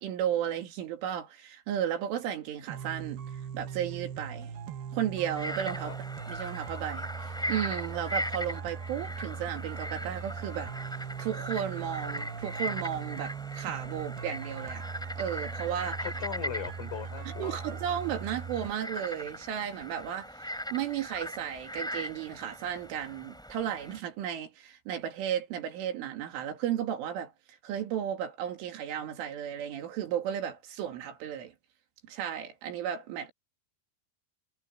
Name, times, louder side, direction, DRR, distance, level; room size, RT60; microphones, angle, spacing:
voice 1, 0.0-3.2 3.5-4.5 4.9-5.9 6.3-7.1 7.5-10.7 11.2-14.9 15.2-16.0 17.4-20.3 20.7-27.3 27.6-31.5 32.1-33.3, right 10 dB, 80° right, 5.1 m, -34 dB
sound 1, 2.7-18.7, right 6 dB, 65° right, 3.0 m, -40 dB
Frog, 5.2-24.0, equal, ahead, 4.4 m, -39 dB
voice 2, 16.0-17.6, left 9 dB, 90° left, 6.9 m, -39 dB
omnidirectional pair, 5.6 m